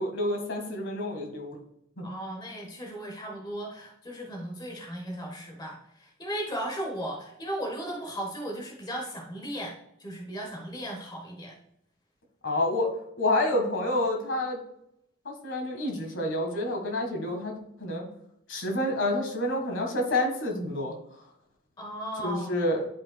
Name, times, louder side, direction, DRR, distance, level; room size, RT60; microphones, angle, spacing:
voice 1, 0.0-1.6 2.0-2.1 12.4-12.9 13.2-14.6 15.2-18.1 18.5-21.0 22.2-22.9, left 1 dB, 65° left, 2 dB, 1.6 m, -28 dB
voice 2, 2.0-9.7 10.0-11.6 21.8-22.6, right 1 dB, 20° left, -1 dB, 1.1 m, -36 dB
11.0 x 5.0 x 2.3 m, 0.76 s
head